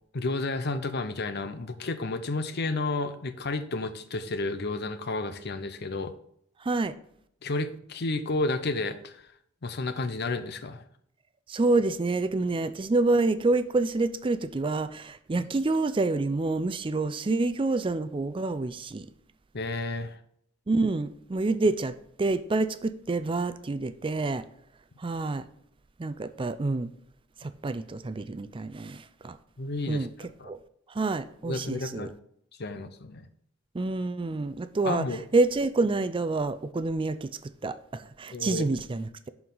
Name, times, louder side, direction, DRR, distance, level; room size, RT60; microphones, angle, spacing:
voice 1, 0.1-6.1 7.4-9.2 9.6-10.8 15.4-15.5 19.5-20.2 29.6-30.1 30.4-30.5 31.4-32.1 32.6-33.3 34.8-35.2 38.3-38.7, left 2 dB, 55° left, 0.7 m, -31 dB
voice 2, 6.6-6.9 11.5-19.1 20.7-24.4 25.0-25.4 26.0-26.9 27.4-29.4 29.9-30.1 30.5-30.6 30.9-32.1 33.7-35.1 35.3-39.3, right 3 dB, 25° right, 0.4 m, -27 dB
11.0 x 4.7 x 3.9 m
head